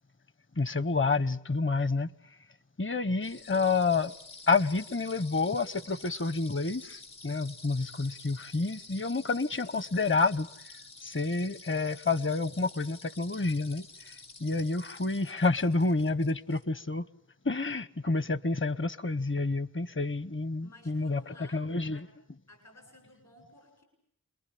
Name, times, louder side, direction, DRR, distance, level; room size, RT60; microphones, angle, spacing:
voice 1, 0.6-2.1 2.8-4.1 4.5-10.5 11.0-17.1 17.4-22.1, left 3 dB, 40° left, 1.0 m, -29 dB
sound 1, 3.2-16.6, left 3 dB, 85° left, 2.4 m, -50 dB
voice 2, 20.6-22.1 22.5-23.8, left 2 dB, 70° left, 7.8 m, -56 dB
29.0 x 22.0 x 8.5 m
cardioid pair, 45°, 32 cm